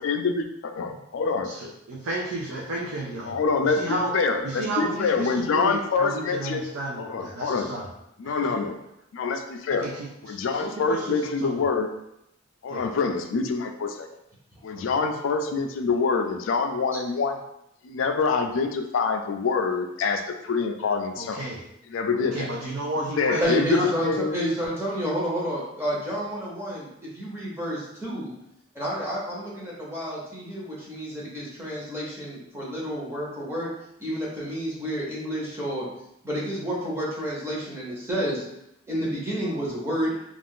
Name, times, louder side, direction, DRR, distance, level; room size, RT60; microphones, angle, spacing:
voice 1, 0.0-1.7 3.2-6.6 7.0-7.7 8.2-8.8 9.1-9.9 10.2-11.9 12.6-14.1 14.6-17.4 17.8-21.5 21.9-22.5 23.2-24.4, left 4 dB, 75° left, 6 dB, 0.4 m, -26 dB
voice 2, 1.4-4.1 4.4-7.9 8.2-8.5 9.8-11.7 12.7-12.9 14.8-14.9 21.2-21.6 22.3-23.9, right 2 dB, 85° right, -4 dB, 0.5 m, -32 dB
voice 3, 23.4-28.3 28.7-33.7 34.0-35.9 36.2-38.4 38.9-40.1, equal, 15° right, -6 dB, 0.8 m, -30 dB
2.5 x 2.4 x 3.5 m, 0.81 s
head